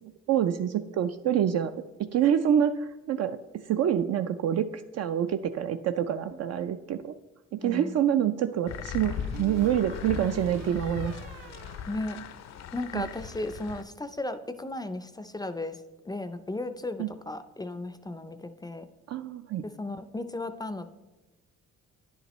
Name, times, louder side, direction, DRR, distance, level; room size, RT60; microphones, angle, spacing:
voice 1, 0.0-1.7 2.1-7.1 7.5-11.2 12.9-13.1 17.0-17.1 19.1-19.6, right 9 dB, 55° right, 8 dB, 0.4 m, -27 dB
sound 1, 6.3-7.2 9.0-12.5 12.8-13.3, right 6 dB, 90° right, 0.7 m, -47 dB
voice 2, 7.6-8.0 11.9-12.2 12.7-18.9 19.6-20.9, left 2 dB, 15° left, 11 dB, 0.4 m, -35 dB
sound 2, 8.7-13.8, left 8 dB, 60° left, 0.6 m, -38 dB
10.0 x 8.0 x 3.1 m, 1.2 s
cardioid pair, 90°, 30 cm